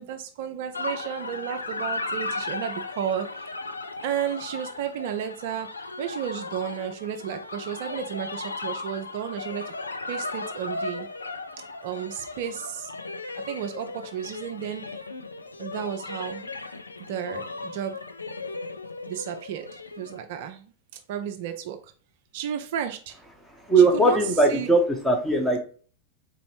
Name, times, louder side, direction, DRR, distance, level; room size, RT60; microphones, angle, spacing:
voice 1, 0.0-3.3 4.0-5.7 6.0-9.7 10.1-11.1 11.8-12.9 13.5-14.8 15.6-16.4 17.1-18.0 19.1-20.7 21.1-21.9 22.3-23.2 23.8-24.2 24.5-24.7, right 9 dB, 50° right, 7 dB, 0.3 m, -33 dB
sound 1, 0.7-20.2, left 3 dB, 80° left, 0.3 m, -36 dB
voice 2, 23.6-25.6, right 2 dB, 5° left, 2 dB, 0.8 m, -20 dB
3.9 x 3.0 x 3.0 m, 0.43 s
figure-of-eight pair, 90°, 0 cm